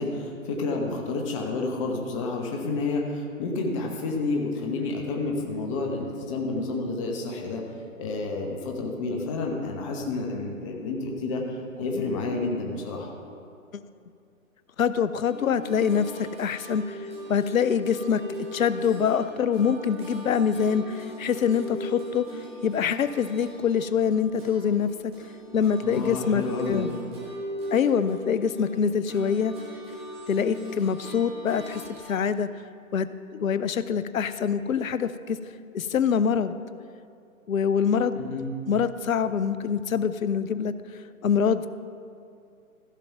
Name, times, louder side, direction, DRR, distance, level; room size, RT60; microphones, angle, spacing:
voice 1, 0.0-7.6 8.0-13.1 25.8-26.9 38.2-38.5, left 3 dB, 20° left, 1 dB, 1.0 m, -30 dB
voice 2, 14.8-25.1 25.5-26.9 27.7-29.5 30.3-31.8 32.1-32.5 32.9-35.4 35.7-36.6 37.5-38.2 38.7-40.7 41.2-41.7, left 7 dB, 70° left, 13 dB, 0.6 m, -25 dB
sound 1, 15.3-24.8 25.1-32.2, right 1 dB, 15° right, 2.0 m, -40 dB
15.0 x 5.3 x 5.8 m, 2.5 s
figure-of-eight pair, 135°, 43 cm